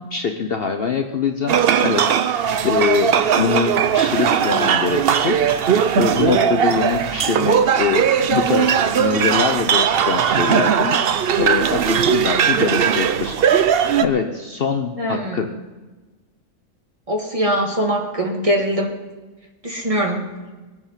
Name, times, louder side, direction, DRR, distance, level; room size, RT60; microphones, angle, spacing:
voice 1, 0.1-11.0 11.4-13.4 14.0-15.5, left 6 dB, 50° left, 6 dB, 0.8 m, -23 dB
sound 1, 1.5-14.1, right 8 dB, 55° right, 0.7 m, -18 dB
voice 2, 15.0-15.5 17.1-19.0 19.6-20.3, equal, 25° right, 1 dB, 1.8 m, -22 dB
20.5 x 8.9 x 5.7 m, 1.2 s
omnidirectional pair, 1.4 m